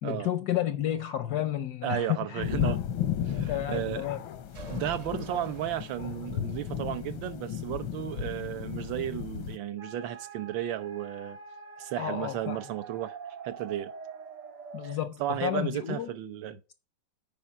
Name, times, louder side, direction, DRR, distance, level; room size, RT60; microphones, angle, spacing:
voice 1, 0.0-2.4 3.3-4.2 12.0-12.6 14.7-16.1, left 12 dB, 70° left, 0.9 m, -31 dB
voice 2, 1.8-2.8 3.2-4.0 4.7-11.4 11.8-13.2 13.4-13.9 14.8-16.7, right 12 dB, 75° right, 1.5 m, -34 dB
sound 1, 2.4-9.6, left 9 dB, 90° left, 1.7 m, -34 dB
sound 2, 4.5-6.6, right 3 dB, 45° right, 1.1 m, -47 dB
sound 3, 9.8-15.0, right 6 dB, 60° right, 1.9 m, -45 dB
9.3 x 4.7 x 5.4 m
omnidirectional pair, 2.1 m